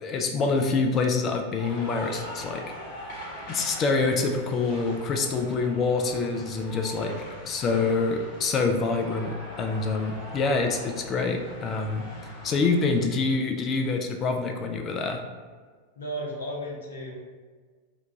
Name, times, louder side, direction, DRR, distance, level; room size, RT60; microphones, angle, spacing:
voice 1, 0.0-2.6 3.5-7.1 7.5-12.0 12.4-15.2, left 4 dB, 30° left, 4 dB, 0.3 m, -26 dB
sound 1, 1.6-13.0, left 1 dB, 45° left, 1.0 m, -42 dB
voice 2, 6.8-7.2 16.0-17.1, equal, 65° left, -2 dB, 0.7 m, -35 dB
2.8 x 2.2 x 3.6 m, 1.5 s
figure-of-eight pair, 90°, 0 cm